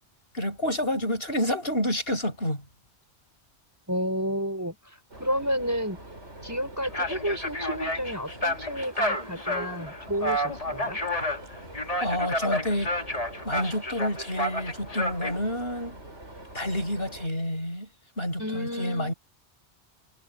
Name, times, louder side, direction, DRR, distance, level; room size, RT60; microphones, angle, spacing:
voice 1, 0.3-2.6 12.0-12.9 13.4-16.0 16.5-17.9 18.2-19.1, left 1 dB, 60° left, 7.9 m, -29 dB
voice 2, 3.9-6.0 6.4-11.0 18.4-19.1, equal, 15° right, 5.6 m, -31 dB
sound 1, 5.1-17.3, right 1 dB, 80° right, 6.9 m, -45 dB
sound 2, 6.8-15.4, left 1 dB, 30° left, 2.3 m, -30 dB
omnidirectional pair, 1.2 m